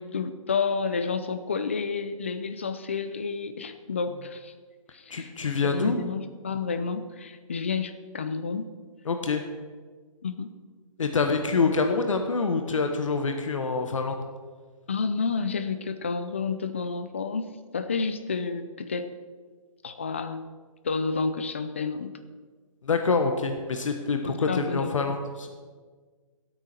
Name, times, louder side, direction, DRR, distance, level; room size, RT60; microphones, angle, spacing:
voice 1, 0.0-4.5 4.9-5.3 5.7-8.7 10.2-10.5 11.6-11.7 14.9-19.1 19.8-20.5 20.8-22.2 24.2-25.1, left 5 dB, 20° left, 10 dB, 0.4 m, -30 dB
voice 2, 5.1-6.0 9.0-9.4 11.0-14.2 22.8-25.5, left 4 dB, 65° left, 5 dB, 1.2 m, -26 dB
12.5 x 8.7 x 6.0 m, 1.5 s
hypercardioid pair, 175°, 18 cm